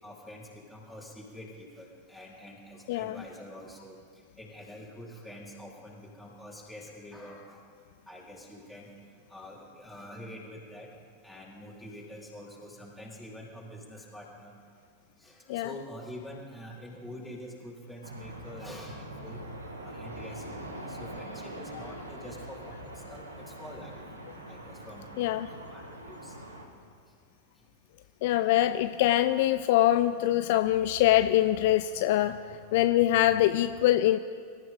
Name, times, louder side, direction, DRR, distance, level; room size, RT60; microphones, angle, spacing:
voice 1, 0.0-7.6 8.1-10.9 11.2-14.6 15.2-19.4 19.8-24.0 24.5-25.4 25.7-26.4 27.6-27.7, left 1 dB, ahead, -5 dB, 4.4 m, -46 dB
voice 2, 2.9-3.2 15.5-15.7 25.2-25.5 28.2-32.4 32.7-34.2, left 13 dB, 50° left, 11 dB, 0.4 m, -24 dB
sound 1, 18.0-26.7, right 1 dB, 75° right, 2.0 m, -43 dB
24.5 x 14.5 x 3.9 m, 2.1 s
figure-of-eight pair, 90°, 0 cm